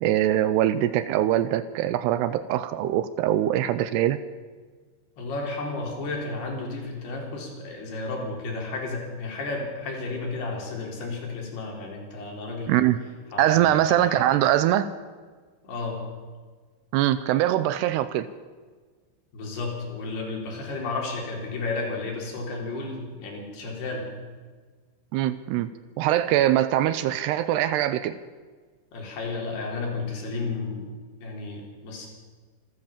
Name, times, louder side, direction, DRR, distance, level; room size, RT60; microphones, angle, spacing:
voice 1, 0.0-4.2 12.7-13.0 13.4-14.9 16.9-18.3 25.1-25.7 26.0-28.2, right 12 dB, 80° right, 13 dB, 2.7 m, -22 dB
voice 2, 5.2-12.8 13.3-14.2 15.6-16.0 19.3-24.1 28.9-32.1, left 3 dB, 65° left, 0 dB, 5.9 m, -32 dB
27.0 x 13.5 x 7.3 m, 1.5 s
omnidirectional pair, 5.0 m